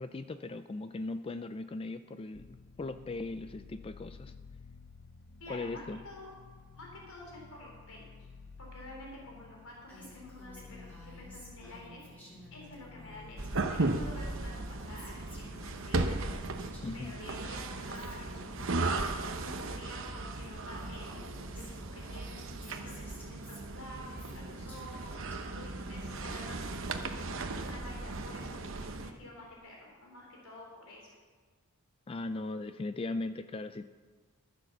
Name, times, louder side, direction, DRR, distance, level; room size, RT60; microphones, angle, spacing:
voice 1, 0.0-4.3 5.5-6.0 16.8-17.1 32.1-33.8, left 2 dB, 25° left, 11 dB, 0.3 m, -38 dB
sound 1, 2.3-20.3, left 4 dB, 50° left, 0.7 m, -54 dB
voice 2, 5.4-6.3 6.7-8.1 8.6-12.0 12.5-16.3 16.9-31.1, left 1 dB, 75° left, -2 dB, 3.7 m, -50 dB
Female speech woman speaking, 9.9-13.5 13.8-17.1 17.3-19.7 20.4-20.5 20.7-25.4 25.8-27.7, equal, 10° left, 3.7 m, -53 dB
sound 2, 13.4-29.1, right 2 dB, 60° right, 0.9 m, -36 dB
14.5 x 7.4 x 6.8 m, 1.5 s
head